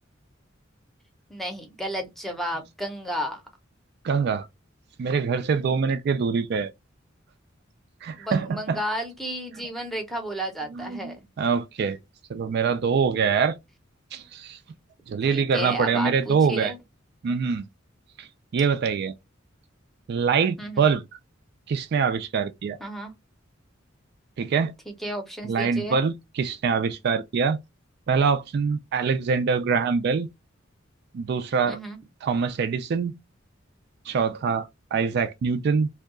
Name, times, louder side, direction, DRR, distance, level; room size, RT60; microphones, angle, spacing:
voice 1, 1.3-3.4 8.2-11.2 15.3-16.8 20.6-20.9 22.8-23.1 24.9-26.0 31.7-32.0, equal, ahead, 0.7 m, -32 dB
voice 2, 4.0-4.5 5.0-6.7 8.0-8.8 10.8-12.0 12.3-13.6 14.1-14.6 15.1-16.7 17.2-17.7 18.2-19.1 20.1-21.0 21.7-22.8 24.4-24.7 25.4-27.6 28.1-30.3 31.1-31.8 32.2-33.2 34.1-35.9, right 5 dB, 55° right, 0.3 m, -24 dB
2.7 x 2.2 x 3.7 m
head